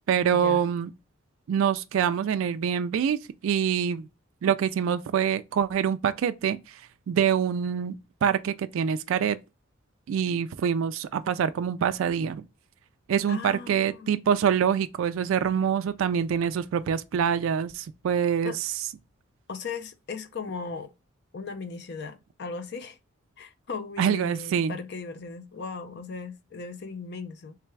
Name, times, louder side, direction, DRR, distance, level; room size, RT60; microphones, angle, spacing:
voice 1, 0.1-0.9 1.5-4.1 4.4-6.8 7.1-9.4 10.1-12.4 13.1-18.7 24.0-24.8, right 8 dB, 70° right, 0.3 m, -25 dB
voice 2, 13.3-14.1 18.4-18.6 19.5-20.9 21.3-23.0 23.4-27.6, left 4 dB, 55° left, 0.5 m, -37 dB
3.4 x 3.3 x 3.1 m
head